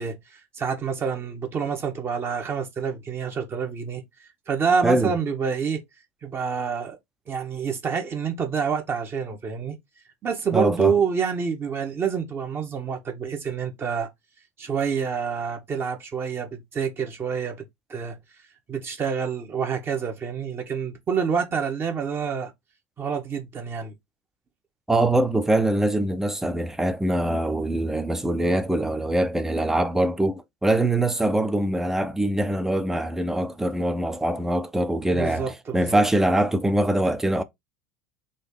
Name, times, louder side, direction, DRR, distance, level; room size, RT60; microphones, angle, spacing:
voice 1, 0.0-5.8 6.2-7.0 7.3-9.8 10.2-14.1 14.6-17.6 17.9-18.2 18.7-22.5 23.0-23.9 35.1-36.0, right 6 dB, 30° right, 1.2 m, -27 dB
voice 2, 10.5-10.9 24.9-37.4, right 1 dB, 5° right, 0.6 m, -23 dB
4.0 x 2.7 x 3.8 m
figure-of-eight pair, 75°, 8 cm